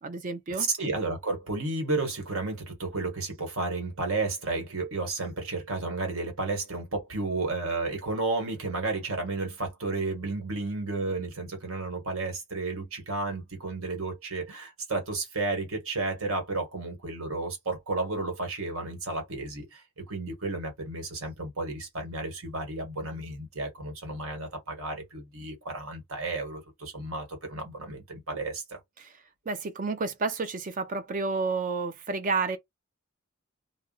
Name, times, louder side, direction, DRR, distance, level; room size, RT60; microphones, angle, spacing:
voice 1, 0.0-0.7 29.0-29.1 29.5-32.6, right 4 dB, 40° right, 0.4 m, -30 dB
voice 2, 0.6-28.8, right 3 dB, 75° right, 1.4 m, -32 dB
2.5 x 2.0 x 3.8 m
head